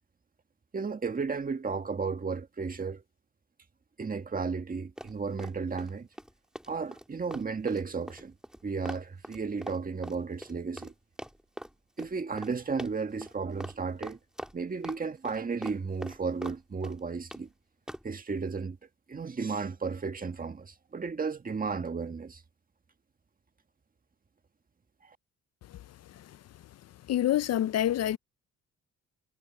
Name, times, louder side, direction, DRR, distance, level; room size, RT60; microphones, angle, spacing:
voice 1, 0.7-3.0 4.0-6.1 6.7-8.3 8.6-10.9 12.0-14.2 14.5-17.5 18.0-18.8 19.1-22.4, right 5 dB, 30° right, 1.7 m, -34 dB
Run, 5.0-5.9 6.2-10.9 11.2-11.7 12.0-12.1 12.4-12.5 12.8-13.3 13.6-13.8 14.0-15.0 15.3-16.6 16.8-17.4 17.9-18.1, equal, ahead, 2.3 m, -42 dB
voice 2, 27.1-28.2, left 12 dB, 55° left, 0.5 m, -26 dB
cardioid pair, 90°, 30 cm